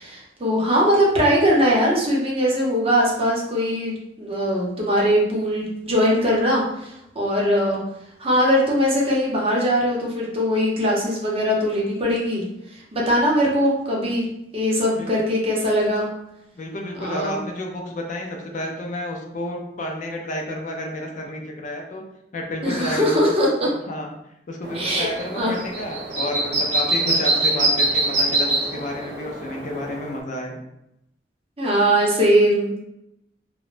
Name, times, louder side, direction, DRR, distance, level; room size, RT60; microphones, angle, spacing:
voice 1, 0.0-3.9 4.2-7.8 8.2-12.4 12.7-14.2 14.5-16.1 17.0-17.4 22.6-23.7 24.7-25.1 25.4-25.5 31.6-32.8, equal, 35° right, -3 dB, 0.7 m, -21 dB
voice 2, 16.5-22.0 22.3-23.2 23.9-24.1 24.5-30.6, left 1 dB, 45° left, 1 dB, 0.4 m, -31 dB
sound 1, 24.6-30.2, right 2 dB, 75° right, 0.7 m, -24 dB
3.1 x 2.0 x 2.4 m, 0.82 s
head